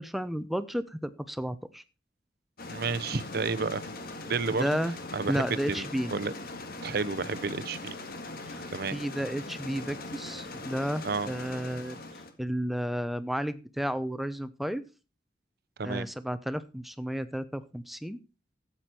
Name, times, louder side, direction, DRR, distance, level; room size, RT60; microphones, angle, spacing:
voice 1, 0.0-1.8 4.6-4.9 5.3-6.1 8.4-8.6 8.9-12.0 12.4-14.8 15.8-18.2, equal, ahead, 0.7 m, -32 dB
sound 1, 2.6-12.3, left 2 dB, 55° left, 1.9 m, -41 dB
voice 2, 2.7-3.8 4.3-4.7 5.1-5.9 6.1-6.3 6.8-8.0 8.7-9.0 11.0-11.3 15.8-16.1, right 4 dB, 55° right, 0.7 m, -31 dB
13.5 x 8.6 x 4.4 m
head